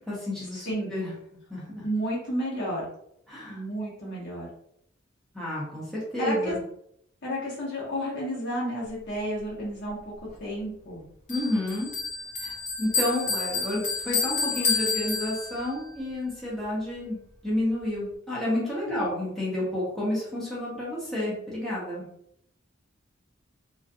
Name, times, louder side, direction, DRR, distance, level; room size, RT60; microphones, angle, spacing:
voice 1, 0.1-1.1 1.5-1.8 3.3-3.6 5.3-6.6 11.3-11.9 12.4-17.2 17.4-22.0, left 1 dB, ahead, -8 dB, 0.7 m, -30 dB
voice 2, 1.8-2.8 3.5-4.5 6.2-6.5 7.2-10.0 10.4-11.0 18.8-19.1, equal, 60° left, -5 dB, 1.0 m, -31 dB
Bell, 11.3-15.8, left 4 dB, 35° left, 0.8 m, -29 dB
2.5 x 2.2 x 2.6 m, 0.73 s
head